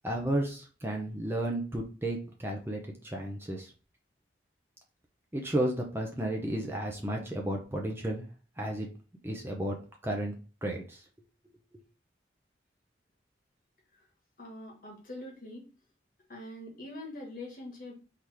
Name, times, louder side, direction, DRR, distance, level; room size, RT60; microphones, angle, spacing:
voice 1, 0.0-3.7 5.3-8.3 8.6-8.9 9.2-9.8 10.0-11.0, right 1 dB, 15° right, 1 dB, 0.6 m, -33 dB
voice 2, 14.4-15.7 16.3-17.9, left 1 dB, 50° left, -1 dB, 1.4 m, -43 dB
3.9 x 3.0 x 3.3 m, 0.35 s
head